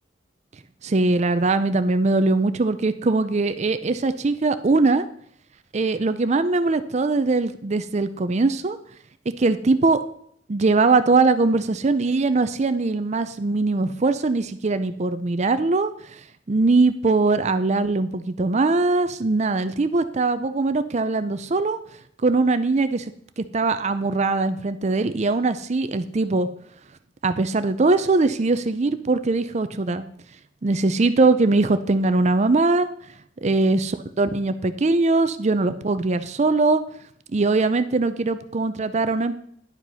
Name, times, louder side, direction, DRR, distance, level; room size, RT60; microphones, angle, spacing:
voice 1, 0.8-5.1 5.7-8.8 9.4-10.0 10.5-15.9 16.5-21.8 22.2-23.1 23.4-26.5 27.2-30.1 30.6-32.9 33.4-36.8 37.3-39.4, right 3 dB, 35° right, 11 dB, 0.5 m, -21 dB
11.0 x 5.2 x 5.5 m, 0.65 s
head